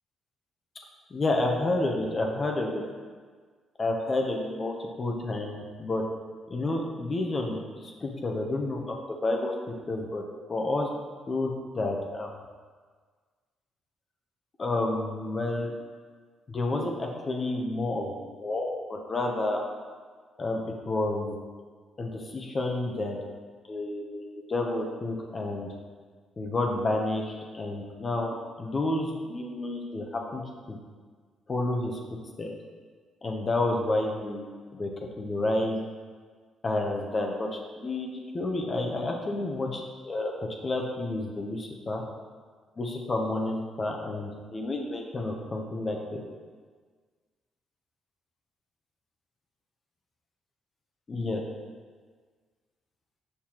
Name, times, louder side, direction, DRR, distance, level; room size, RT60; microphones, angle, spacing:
voice 1, 1.1-2.8 3.8-6.0 6.5-9.5 9.9-10.2 10.5-10.9 11.3-12.3 14.6-15.7 16.5-19.7 20.4-21.4 22.0-23.2 23.6-25.7 26.4-30.4 30.7-30.8 31.5-32.0 32.4-32.5 33.2-34.9 35.2-35.8 36.6-39.8 40.0-40.3 40.6-42.0 42.8-46.2 51.1-51.4, left 2 dB, 35° left, 1 dB, 0.8 m, -30 dB
6.6 x 5.5 x 3.0 m, 1.5 s
cardioid pair, 90°, 0 cm